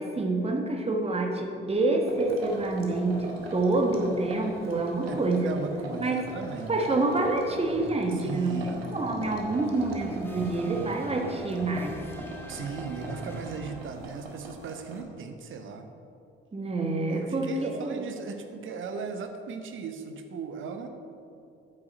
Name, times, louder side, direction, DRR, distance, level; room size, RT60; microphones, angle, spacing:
voice 1, 0.0-5.5 6.0-6.2 6.7-12.0 16.5-18.0, right 2 dB, 20° right, 2 dB, 1.3 m, -27 dB
sound 1, 2.0-15.0, right 2 dB, 80° right, 0.9 m, -41 dB
voice 2, 5.1-6.7 8.1-8.9 12.5-15.9 17.1-20.9, right 5 dB, 40° right, 7 dB, 0.9 m, -37 dB
sound 2, 6.2-14.1, equal, 5° left, 1.3 m, -44 dB
8.5 x 6.6 x 4.4 m, 2.6 s
figure-of-eight pair, 45°, 30 cm